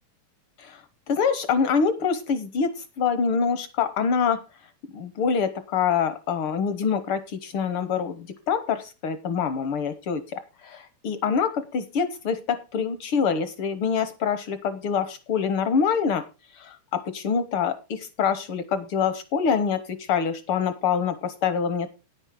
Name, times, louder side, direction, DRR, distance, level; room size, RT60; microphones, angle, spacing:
voice 1, 1.1-4.4 4.9-10.4 10.7-16.2 16.5-21.9, left 6 dB, 70° left, 12 dB, 1.3 m, -25 dB
9.9 x 8.9 x 4.9 m, 0.29 s
omnidirectional pair, 3.5 m